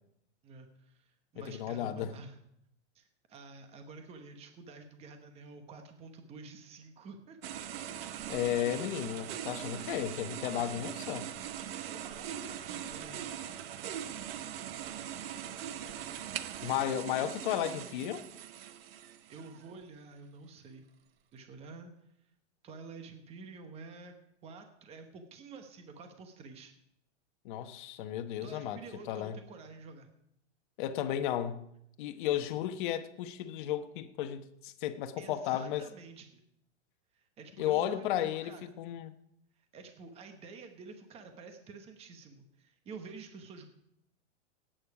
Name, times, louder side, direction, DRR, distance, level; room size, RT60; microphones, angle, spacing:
voice 1, 0.4-2.4 2.9-7.4 10.6-10.7 11.8-13.3 19.3-20.9 21.3-21.9 22.6-24.1 24.4-26.7 28.4-30.1 35.2-36.4 37.1-38.7 39.7-43.6, right 4 dB, 15° right, 1.1 m, -49 dB
voice 2, 1.4-2.1 8.3-11.3 16.6-18.2 27.4-28.8 29.1-29.4 30.8-31.6 32.0-35.8 37.6-39.1, left 11 dB, 45° left, 1.1 m, -34 dB
sound 1, 7.4-19.7, right 10 dB, 55° right, 0.9 m, -41 dB
17.5 x 9.0 x 4.8 m
supercardioid pair, 155°, 35 cm